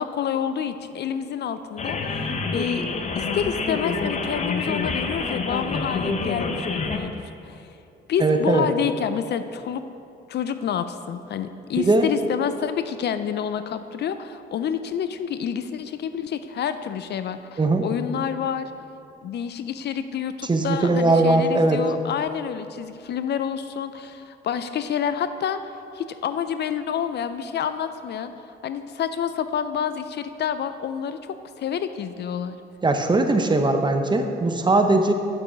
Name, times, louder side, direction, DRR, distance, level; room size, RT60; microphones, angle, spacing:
voice 1, 0.0-2.9 3.1-7.7 8.1-9.8 10.3-18.7 19.2-32.6, left 8 dB, 60° left, 11 dB, 0.5 m, -28 dB
sound 1, 1.8-7.0, left 4 dB, 35° left, 0.8 m, -27 dB
voice 2, 8.2-8.7 11.8-12.1 17.6-17.9 20.5-21.8 32.8-35.1, right 2 dB, 25° right, 6 dB, 0.8 m, -20 dB
8.5 x 6.8 x 5.2 m, 2.7 s
cardioid pair, 90°, 20 cm